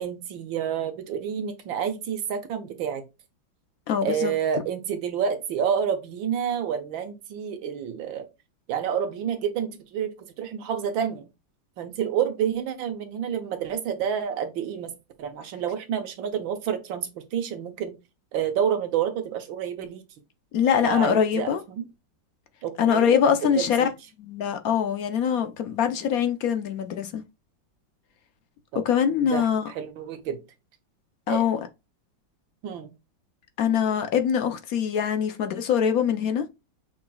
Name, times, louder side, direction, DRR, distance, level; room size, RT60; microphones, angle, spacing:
voice 1, 0.0-3.0 4.0-8.3 8.7-10.1 10.4-11.2 11.8-14.9 15.2-18.0 18.3-20.0 20.8-21.8 22.6-23.9 28.7-28.8 29.3-30.4 31.3-31.4 32.6-32.9, right 8 dB, 80° right, 1.6 m, -29 dB
voice 2, 3.9-4.3 20.5-21.6 22.8-23.9 24.2-27.2 28.8-29.7 31.3-31.7 33.6-36.4, left 8 dB, 65° left, 0.9 m, -23 dB
6.1 x 3.7 x 2.3 m
omnidirectional pair, 2.1 m